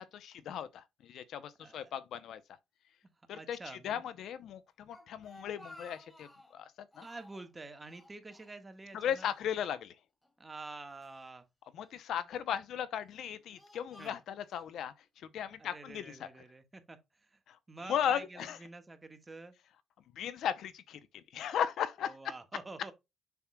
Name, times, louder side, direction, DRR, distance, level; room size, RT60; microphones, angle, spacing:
voice 1, 0.0-2.4 3.3-3.6 3.8-6.7 7.0-7.1 8.9-9.9 11.7-14.9 15.3-16.3 17.5-17.6 17.9-18.6 20.2-22.2, left 9 dB, 75° left, 0.6 m, -36 dB
voice 2, 1.6-1.9 3.3-4.0 7.0-9.3 10.4-11.5 12.2-12.3 14.0-14.2 15.6-17.4 17.7-19.5 22.0-22.9, right 3 dB, 20° right, 1.5 m, -48 dB
Speech, 4.7-6.6 6.9-7.5 7.9-9.0 9.2-9.4 10.2-11.2 11.9-12.4 13.0-14.7, left 1 dB, 15° left, 2.3 m, -57 dB
7.0 x 5.9 x 2.2 m
cardioid pair, 90°, 0 cm